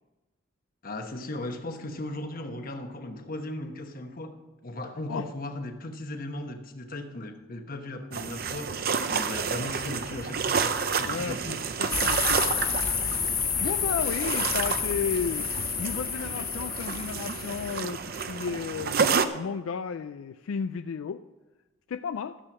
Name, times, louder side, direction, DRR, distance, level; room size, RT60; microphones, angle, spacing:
voice 1, 0.8-4.4 4.6-8.8 9.1-11.6, left 1 dB, 45° left, 6 dB, 1.1 m, -37 dB
sound 1, 8.1-19.2, right 5 dB, 45° right, 0.6 m, -30 dB
voice 2, 11.1-12.8 13.6-15.5 15.8-21.2 21.9-22.4, left 6 dB, 75° left, 10 dB, 0.4 m, -33 dB
sound 2, 11.9-17.8, left 7 dB, 20° left, 0.5 m, -30 dB
12.5 x 7.6 x 6.0 m, 1.1 s
head